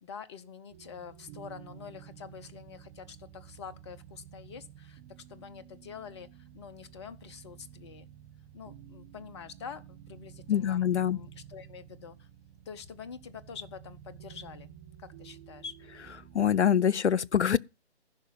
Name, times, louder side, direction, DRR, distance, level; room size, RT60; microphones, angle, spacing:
voice 1, 0.0-8.1 8.5-12.3 12.7-14.7 15.0-15.8, left 6 dB, 25° left, 0.7 m, -46 dB
sound 1, 0.7-16.7, right 10 dB, 15° right, 1.0 m, -52 dB
voice 2, 10.5-11.2 16.3-17.6, left 8 dB, 85° left, 0.6 m, -24 dB
15.0 x 5.7 x 7.7 m
figure-of-eight pair, 140°, 33 cm